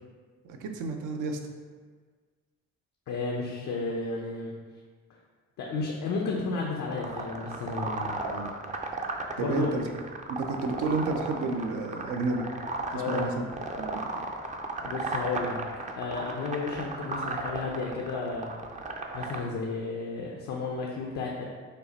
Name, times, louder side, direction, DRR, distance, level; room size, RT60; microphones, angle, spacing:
voice 1, 0.4-1.4 8.2-8.5 9.4-9.8 10.3-12.5 12.9-13.5 13.8-14.0, right 3 dB, 80° right, 4 dB, 0.6 m, -31 dB
voice 2, 3.1-4.5 5.6-8.2 9.4-9.7 12.9-13.3 14.8-15.6 16.0-18.5 19.1-21.4, left 3 dB, 70° left, -1 dB, 0.6 m, -32 dB
sound 1, 6.9-19.4, right 3 dB, 25° right, 0.4 m, -35 dB
5.3 x 2.1 x 4.0 m, 1.5 s
cardioid pair, 80°, 30 cm